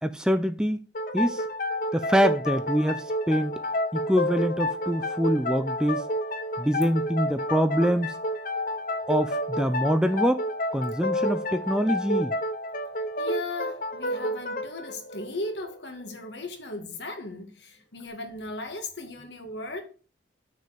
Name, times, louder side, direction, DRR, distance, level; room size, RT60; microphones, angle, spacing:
voice 1, 0.0-0.8 1.1-1.4 1.9-3.6 3.9-6.0 6.6-8.2 9.1-12.3, equal, 5° right, 0.5 m, -25 dB
sound 1, 0.9-16.3, left 1 dB, 50° left, 0.8 m, -30 dB
voice 2, 13.2-19.8, left 2 dB, 80° left, 2.0 m, -37 dB
6.5 x 4.9 x 6.9 m
head